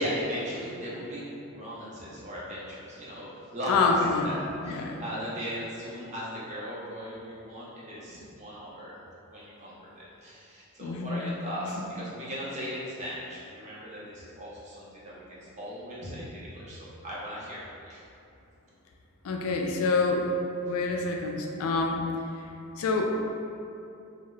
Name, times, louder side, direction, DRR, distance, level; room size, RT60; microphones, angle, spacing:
voice 1, 0.0-3.9 4.2-8.9 9.3-18.0, equal, 30° right, -7 dB, 0.6 m, -37 dB
voice 2, 3.7-4.3 4.6-5.0 10.8-11.2 11.6-11.7 19.2-20.3 20.7-22.0 22.3-23.2, left 3 dB, 65° left, 2 dB, 0.3 m, -27 dB
2.2 x 2.0 x 3.7 m, 2.7 s
head